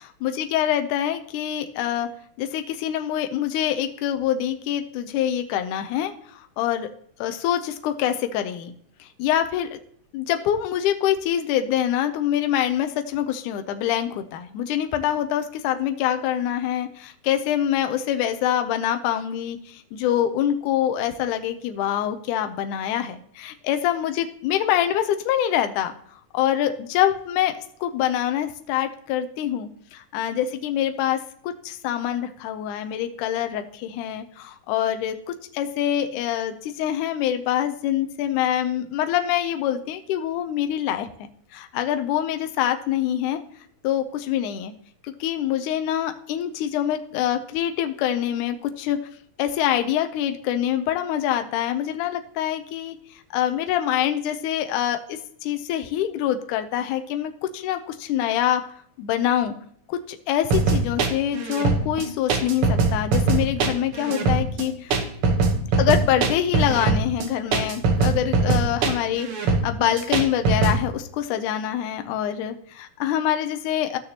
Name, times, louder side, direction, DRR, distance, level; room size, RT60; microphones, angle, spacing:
voice 1, 0.2-2.1 2.4-6.9 7.2-8.7 9.0-9.8 10.1-26.0 26.4-41.1 41.5-43.4 43.8-44.7 45.1-49.0 49.4-58.6 59.0-59.5 59.9-65.0 65.8-74.0, left 11 dB, 85° left, 7 dB, 2.1 m, -25 dB
sound 1, 60.5-70.8, right 3 dB, 60° right, 1.6 m, -21 dB
14.5 x 6.5 x 2.9 m, 0.64 s
omnidirectional pair, 3.6 m